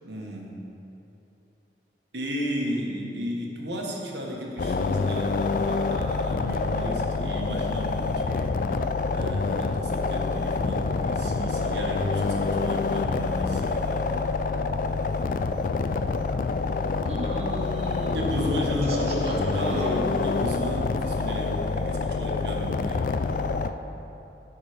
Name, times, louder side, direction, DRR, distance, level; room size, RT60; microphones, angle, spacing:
voice 1, 0.0-0.6 2.1-8.6 9.1-14.1 18.1-23.1, equal, 75° right, -1 dB, 1.4 m, -34 dB
sound 1, 4.6-23.7, left 4 dB, 50° left, 0.3 m, -27 dB
voice 2, 17.0-19.9, right 1 dB, 35° right, -2 dB, 0.7 m, -34 dB
12.5 x 4.9 x 5.0 m, 3.0 s
head